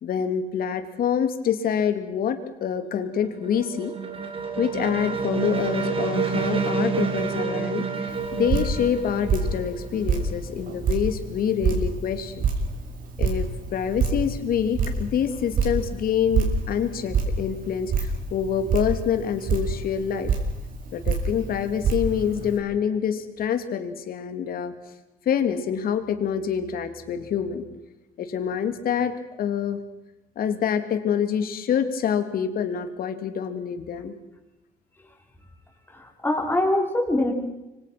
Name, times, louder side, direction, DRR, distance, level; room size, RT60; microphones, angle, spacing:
voice 1, 0.0-3.9 4.6-12.5 13.2-20.3 20.9-24.7 25.2-27.7 28.2-29.1 29.4-29.8 30.4-34.1, left 8 dB, 60° left, 9 dB, 3.0 m, -26 dB
sound 1, 2.8-10.6, right 5 dB, 35° right, 3.6 m, -29 dB
Drip, 8.1-22.6, right 4 dB, 55° right, 6.4 m, -28 dB
voice 2, 35.9-37.3, left 1 dB, 10° left, 1 dB, 5.6 m, -23 dB
26.0 x 25.0 x 6.1 m, 0.98 s
cardioid pair, 110°, 17 cm